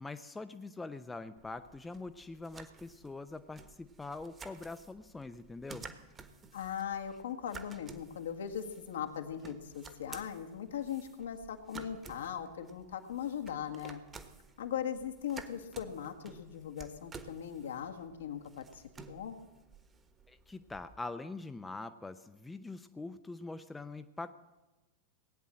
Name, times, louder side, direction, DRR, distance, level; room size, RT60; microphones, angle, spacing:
voice 1, 0.0-5.9 20.3-24.3, left 3 dB, 10° left, 10 dB, 0.6 m, -44 dB
sound 1, 1.4-21.0, right 4 dB, 20° right, 1.4 m, -53 dB
voice 2, 6.5-14.0 14.6-19.4, left 9 dB, 65° left, 4 dB, 1.6 m, -39 dB
18.5 x 9.4 x 7.6 m, 1.1 s
figure-of-eight pair, 90°, 0 cm